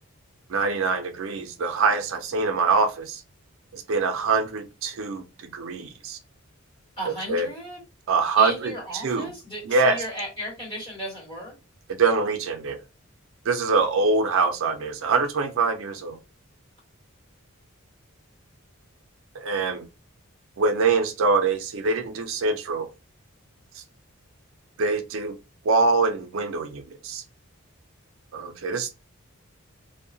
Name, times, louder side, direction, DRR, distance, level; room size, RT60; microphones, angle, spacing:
voice 1, 0.5-3.2 3.7-6.2 7.3-7.5 8.1-8.7 9.0-9.3 9.7-10.0 11.9-12.8 13.5-16.2 19.4-19.9 20.6-22.9 24.8-25.4 25.7-27.2 28.3-28.9, right 4 dB, 65° right, 0.4 m, -24 dB
voice 2, 7.0-7.8 8.4-11.5, equal, 25° left, 1.6 m, -35 dB
2.7 x 2.0 x 2.6 m
head